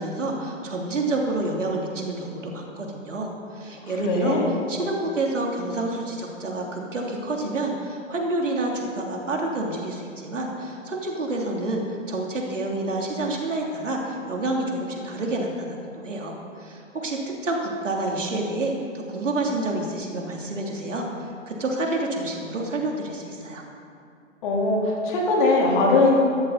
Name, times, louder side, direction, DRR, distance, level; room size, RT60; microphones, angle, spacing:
voice 1, 0.0-11.8 12.1-23.6, right 2 dB, 70° right, 0 dB, 3.1 m, -28 dB
voice 2, 4.0-4.5 24.4-26.2, left 2 dB, 40° left, -2 dB, 3.7 m, -20 dB
19.0 x 14.0 x 4.1 m, 2.6 s
figure-of-eight pair, 125°, 39 cm